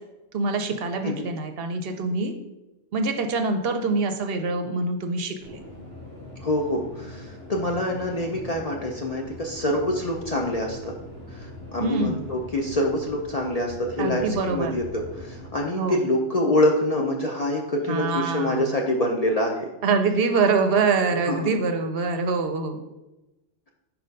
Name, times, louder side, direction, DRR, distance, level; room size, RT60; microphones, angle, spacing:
voice 1, 0.3-2.3 2.9-5.6 11.8-12.2 14.0-14.8 15.8-16.0 17.9-18.8 19.8-22.9, right 4 dB, 65° right, 6 dB, 0.7 m, -25 dB
sound 1, 5.4-15.5, left 1 dB, 80° left, 2.0 m, -41 dB
voice 2, 6.4-10.9 11.3-19.7 21.3-21.4, left 1 dB, 50° left, 0 dB, 0.5 m, -26 dB
4.3 x 4.2 x 5.2 m, 1.0 s
omnidirectional pair, 1.2 m